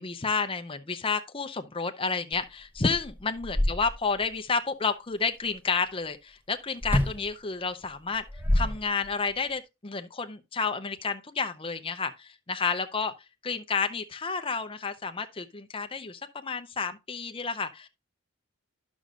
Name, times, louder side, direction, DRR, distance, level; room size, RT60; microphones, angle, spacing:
voice 1, 0.0-8.2 8.5-13.1 13.4-17.9, left 4 dB, 25° left, 0.6 m, -30 dB
sound 1, 2.3-2.4 2.7-4.3 6.8-7.3 8.1-9.3, left 1 dB, 10° right, 0.9 m, -27 dB
11.0 x 6.2 x 2.4 m
head